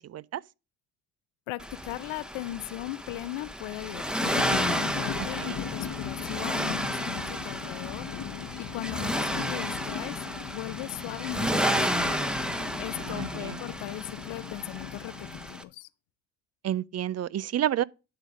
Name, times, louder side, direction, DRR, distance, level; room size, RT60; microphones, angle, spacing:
voice 1, 0.1-0.4 5.4-5.6 13.0-13.6 16.6-17.8, right 11 dB, 35° right, 0.5 m, -30 dB
voice 2, 1.5-4.3 4.6-8.1 8.6-12.1 12.8-15.9, left 18 dB, 70° left, 0.8 m, -38 dB
Accelerating revving vroom, 1.6-15.6, equal, ahead, 1.1 m, -32 dB
sound 1, 4.2-15.5, left 9 dB, 45° left, 1.0 m, -38 dB
11.5 x 4.0 x 6.4 m
hypercardioid pair, 65°, 48 cm